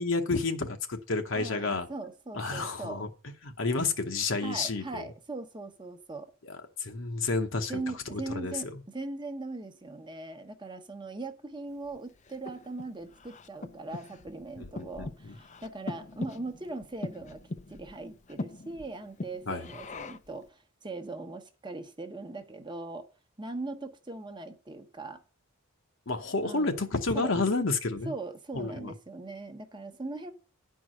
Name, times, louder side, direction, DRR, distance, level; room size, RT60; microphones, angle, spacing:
voice 1, 0.0-1.9 2.3-3.1 3.4-5.1 6.8-7.8 8.1-8.8 14.6-15.3 19.5-19.6 26.1-28.1 28.5-28.9, left 3 dB, 60° left, 1.0 m, -30 dB
voice 2, 1.3-3.0 4.4-6.3 7.7-17.4 17.7-23.1 23.4-25.2 26.4-26.7 27.1-27.3 28.0-30.3, right 2 dB, 20° right, 1.0 m, -40 dB
Breathing, 11.9-20.4, left 2 dB, 35° left, 0.5 m, -42 dB
10.0 x 4.7 x 7.5 m
head